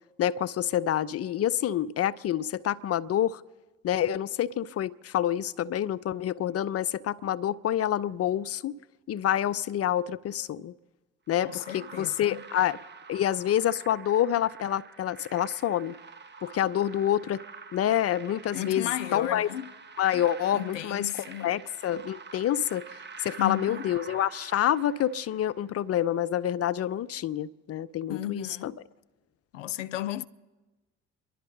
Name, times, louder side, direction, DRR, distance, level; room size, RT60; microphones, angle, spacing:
voice 1, 0.2-3.4 3.8-8.7 9.1-10.7 11.3-12.8 13.1-15.9 16.4-17.4 17.7-19.5 20.0-21.1 21.4-22.9 23.2-28.7, left 11 dB, 40° left, 0.6 m, -27 dB
sound 1, 11.3-25.7, right 5 dB, 30° right, 1.1 m, -47 dB
voice 2, 11.4-12.5 18.5-19.7 20.5-21.5 23.4-23.9 28.1-28.8 29.5-30.3, left 13 dB, 90° left, 0.5 m, -34 dB
28.5 x 11.5 x 3.9 m
hypercardioid pair, 55°, 36 cm